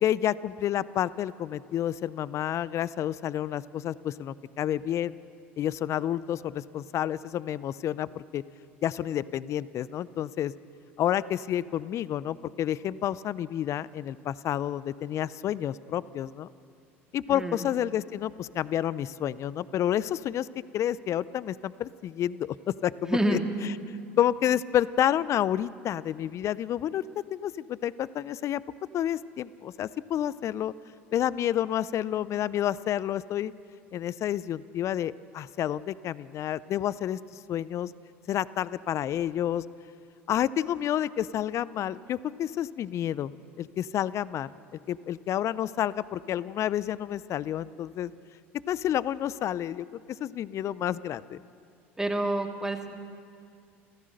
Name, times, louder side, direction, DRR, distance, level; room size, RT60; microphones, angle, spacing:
voice 1, 0.0-5.2 5.6-8.4 8.8-10.5 11.0-16.5 17.1-20.5 20.7-23.4 24.2-28.6 28.9-30.7 31.1-33.5 33.9-37.9 38.3-39.6 40.3-43.3 43.6-44.5 44.9-48.1 48.7-49.9 50.2-51.4, left 11 dB, 45° left, 19 dB, 0.5 m, -29 dB
voice 2, 17.3-17.6 23.0-23.5 52.0-52.9, right 1 dB, 10° right, 3 dB, 2.5 m, -28 dB
29.0 x 15.0 x 6.6 m, 2.3 s
hypercardioid pair, 75°, 7 cm